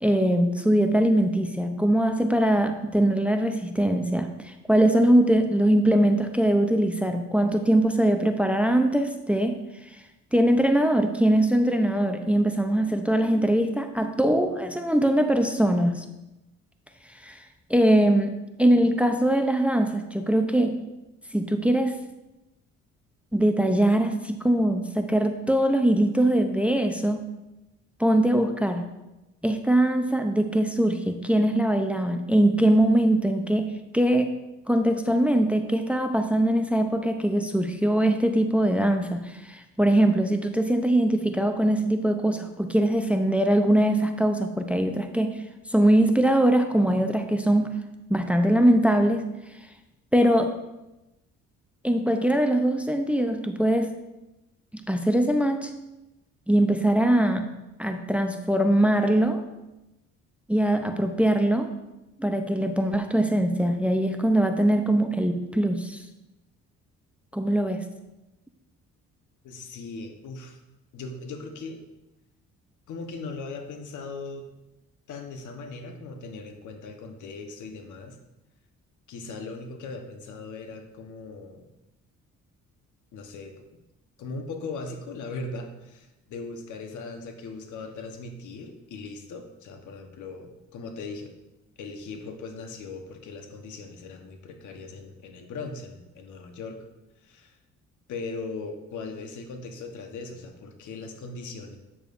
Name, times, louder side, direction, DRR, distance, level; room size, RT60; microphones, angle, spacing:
voice 1, 0.0-9.6 10.3-16.0 17.2-17.4 17.7-20.8 21.3-21.9 23.3-27.2 28.0-28.9 29.4-34.3 34.7-45.4 45.7-47.7 48.1-49.2 50.1-50.5 51.8-53.9 54.9-55.7 56.5-57.5 57.8-59.4 60.5-61.7 62.2-66.0 67.3-67.8, right 1 dB, 5° right, 6 dB, 0.6 m, -22 dB
voice 2, 69.4-70.6 70.9-71.8 72.9-74.5 75.1-78.2 79.1-81.7 83.1-83.5 84.2-91.3 91.8-96.9 97.2-97.6 98.1-101.8, left 3 dB, 75° left, 4 dB, 1.1 m, -39 dB
8.6 x 6.9 x 2.5 m, 0.97 s
cardioid pair, 90°, 30 cm